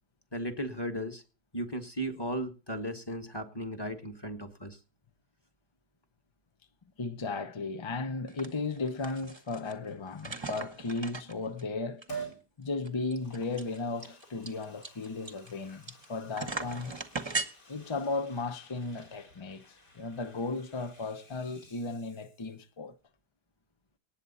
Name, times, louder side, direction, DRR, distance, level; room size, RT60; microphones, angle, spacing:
voice 1, 0.3-1.2 1.5-4.8, equal, 15° left, 1.2 m, -36 dB
voice 2, 7.0-12.1 12.6-16.9 17.7-22.9, left 3 dB, 50° left, 0.3 m, -35 dB
sound 1, 8.3-8.5 8.8-9.7 10.2-11.6 12.0-12.1 12.3-12.4 12.8-16.0 16.3-17.5, right 3 dB, 20° right, 0.9 m, -37 dB
Liquid, 12.1-12.4 13.0-22.7 23.0-23.1, right 5 dB, 65° left, 4.9 m, -49 dB
19.0 x 8.0 x 4.1 m
omnidirectional pair, 1.9 m